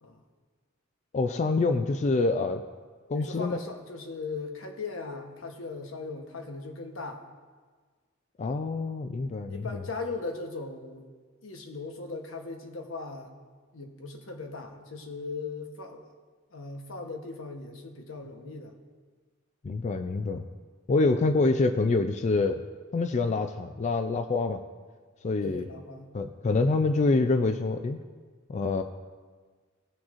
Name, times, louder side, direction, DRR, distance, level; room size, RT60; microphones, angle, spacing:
voice 1, 1.1-2.6 3.1-3.6 8.4-9.8 19.6-20.5 20.9-22.6 22.9-24.6 25.2-25.6 26.1-28.0 28.5-28.8, left 3 dB, 35° left, 7 dB, 0.3 m, -26 dB
voice 2, 3.1-7.2 9.5-11.1 11.4-13.3 13.7-16.1 16.5-18.7 25.4-26.1, left 3 dB, 85° left, 4 dB, 1.0 m, -38 dB
17.5 x 6.1 x 2.5 m, 1.5 s
head